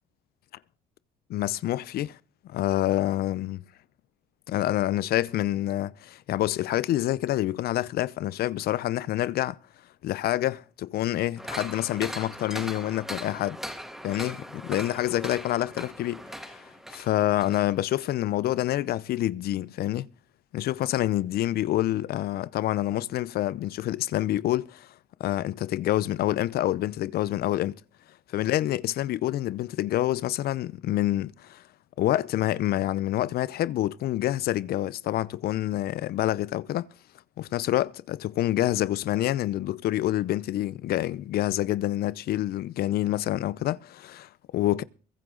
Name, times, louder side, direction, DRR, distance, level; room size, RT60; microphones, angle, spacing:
voice 1, 1.3-2.2 2.4-3.6 4.5-9.6 10.0-13.6 14.0-16.6 16.9-20.1 20.5-24.9 25.2-27.8 28.3-31.6 32.0-36.9 37.4-44.8, left 14 dB, 65° left, 0.7 m, -27 dB
sound 1, 11.4-17.7 18.0-18.1, equal, ahead, 2.7 m, -39 dB
23.0 x 9.6 x 3.9 m
cardioid pair, 110°, 17 cm